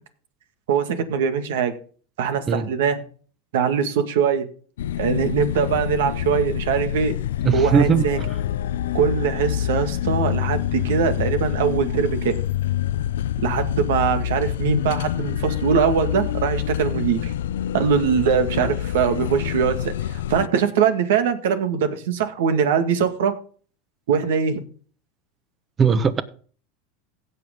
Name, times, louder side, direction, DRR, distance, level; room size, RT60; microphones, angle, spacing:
voice 1, 0.7-1.7 2.2-3.0 3.5-4.5 5.0-7.1 7.5-8.2 8.9-12.3 13.4-17.3 17.7-19.9 20.3-23.3 24.1-24.6, right 7 dB, 80° right, 1.9 m, -22 dB
sound 1, 4.8-20.5, left 11 dB, 85° left, 0.4 m, -26 dB
voice 2, 7.4-8.1 25.8-26.2, right 6 dB, 30° right, 1.2 m, -19 dB
16.5 x 6.0 x 3.7 m
supercardioid pair, 110°, 0 cm